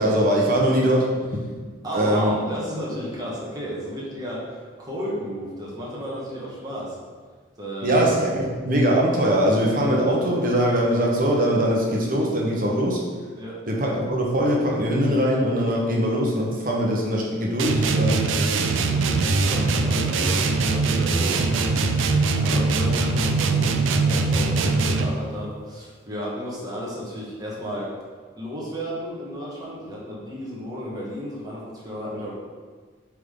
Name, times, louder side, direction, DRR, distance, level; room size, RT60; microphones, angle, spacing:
voice 1, 0.0-1.4 1.9-2.4 7.8-13.0 13.7-18.2, equal, 45° right, -2 dB, 1.1 m, -21 dB
voice 2, 1.8-7.0 7.6-8.0 13.4-13.6 18.9-21.7 22.4-27.9 28.4-32.3, equal, 20° right, -6 dB, 1.4 m, -33 dB
sound 1, 17.6-25.2, right 3 dB, 75° right, 0.5 m, -22 dB
7.3 x 3.7 x 3.8 m, 1.5 s
head